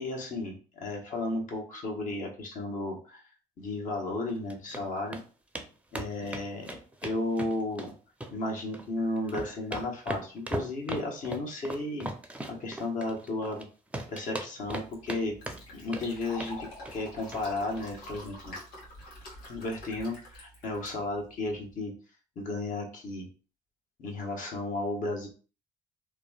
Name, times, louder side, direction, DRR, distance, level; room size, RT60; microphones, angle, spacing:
voice 1, 0.0-3.2 3.6-5.2 5.9-6.7 7.0-7.9 8.3-12.1 12.5-13.7 14.1-15.4 15.7-18.6 19.5-21.9 22.4-23.3 24.0-25.3, left 2 dB, 55° left, 0 dB, 1.0 m, -34 dB
sound 1, 4.3-4.8 5.1-5.2 5.5-5.7 5.9-7.9 8.2-8.9 9.2-13.6 13.9-15.2 15.5-16.1 16.4-16.6 16.8-17.0 17.3-17.4 17.7-17.8, right 1 dB, 10° right, 0.5 m, -38 dB
Fill (with liquid), 14.8-21.7, left 1 dB, 75° left, 1.2 m, -47 dB
3.0 x 2.2 x 2.3 m, 0.37 s
supercardioid pair, 70°, 16 cm